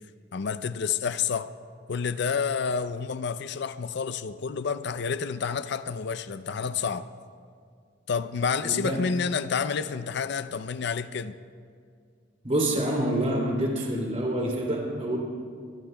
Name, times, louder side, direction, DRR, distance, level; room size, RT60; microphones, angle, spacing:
voice 1, 0.3-1.5 1.9-7.1 8.1-11.4, left 6 dB, 65° left, 12 dB, 0.5 m, -29 dB
voice 2, 8.6-9.0 12.4-15.2, right 1 dB, 35° right, 0 dB, 3.0 m, -27 dB
23.5 x 21.5 x 2.2 m, 2.2 s
head